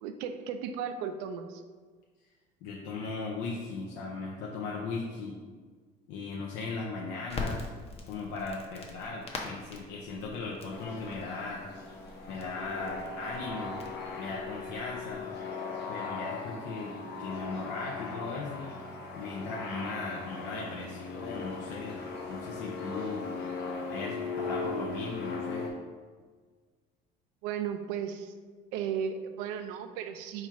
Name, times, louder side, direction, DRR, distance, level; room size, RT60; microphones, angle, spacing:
voice 1, 0.0-1.6 27.4-28.3 28.7-30.5, right 7 dB, 90° right, 8 dB, 0.4 m, -35 dB
voice 2, 2.6-5.4 6.1-7.7 8.1-11.6 12.3-13.8 14.2-15.2 15.9-16.9 17.2-18.7 19.2-22.0 22.3-23.3 23.9-25.7, left 4 dB, 80° left, -3 dB, 0.6 m, -37 dB
Crackle, 7.3-15.2, left 3 dB, 30° left, 0.7 m, -44 dB
sound 1, 10.7-25.7, left 3 dB, 60° left, 0.9 m, -39 dB
4.4 x 2.4 x 4.4 m, 1.5 s
supercardioid pair, 100°, 20 cm